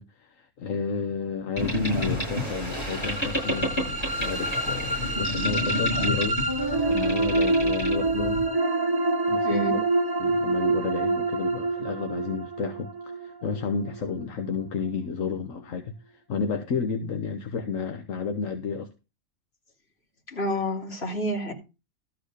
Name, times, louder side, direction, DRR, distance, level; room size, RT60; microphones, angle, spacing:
voice 1, 0.0-6.5 6.8-8.5 9.3-9.8 10.2-18.9, left 5 dB, 70° left, 1.4 m, -31 dB
Boat Water vehicle, 1.6-8.5, equal, 20° left, 7.5 m, -30 dB
sound 1, 2.6-14.7, right 2 dB, 15° right, 1.5 m, -27 dB
voice 2, 9.4-9.8 20.3-21.5, equal, 45° left, 2.9 m, -29 dB
13.0 x 4.7 x 6.6 m
omnidirectional pair, 1.4 m